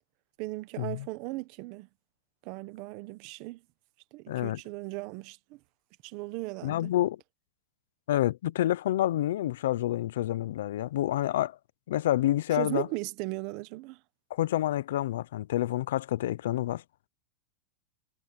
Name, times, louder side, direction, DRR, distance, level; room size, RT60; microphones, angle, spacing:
voice 1, 0.4-1.9 2.4-3.6 4.1-5.6 6.0-6.9 12.5-14.0, right 21 dB, 45° right, 1.1 m, -37 dB
voice 2, 4.3-4.6 6.6-7.2 8.1-11.6 11.9-12.9 14.3-16.8, left 13 dB, 85° left, 0.6 m, -28 dB
supercardioid pair, 165°, 0 cm